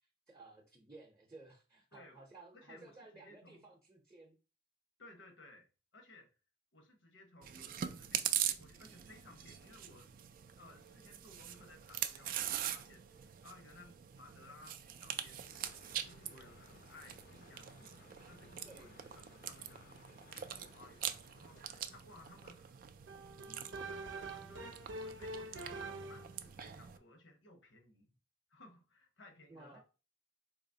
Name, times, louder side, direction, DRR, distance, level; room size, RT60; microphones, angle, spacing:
voice 1, 0.3-4.3 18.6-19.0 29.5-29.8, right 3 dB, 15° right, 0.7 m, -56 dB
voice 2, 2.5-3.6 5.0-5.7 5.9-6.3 6.7-10.1 10.6-15.7 16.0-20.0 20.5-22.8 23.4-28.2 28.5-29.8, left 2 dB, 80° left, 1.0 m, -59 dB
Chewing mastication, 7.4-27.0, right 10 dB, 50° right, 0.3 m, -43 dB
sound 1, 15.4-22.3, left 4 dB, 50° left, 0.5 m, -62 dB
sound 2, 23.1-26.4, right 2 dB, 80° right, 0.6 m, -45 dB
3.9 x 2.9 x 2.7 m
head